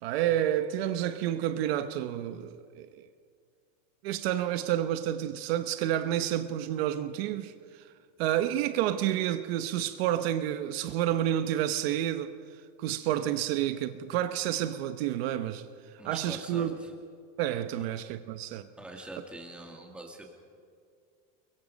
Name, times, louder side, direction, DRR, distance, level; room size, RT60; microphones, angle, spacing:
voice 1, 0.0-3.0 4.0-7.9 8.2-12.4 12.8-15.6 16.0-16.8 17.4-18.7, right 11 dB, 55° right, 1.0 m, -29 dB
voice 2, 16.0-16.9 18.8-20.3, right 1 dB, 5° right, 2.1 m, -43 dB
29.0 x 23.0 x 5.2 m
supercardioid pair, 180°, 36 cm